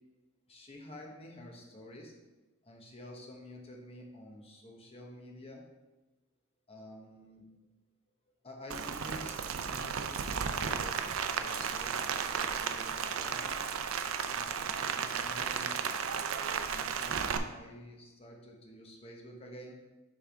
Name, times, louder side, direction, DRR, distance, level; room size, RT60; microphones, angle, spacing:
voice 1, 0.5-2.1 2.6-5.6 6.7-7.5 8.4-13.6 14.3-15.8 16.6-19.8, left 1 dB, 30° left, 0 dB, 1.1 m, -49 dB
Rain, 8.7-17.4, right 6 dB, 75° right, 0.5 m, -34 dB
10.0 x 3.5 x 3.5 m, 1.1 s
head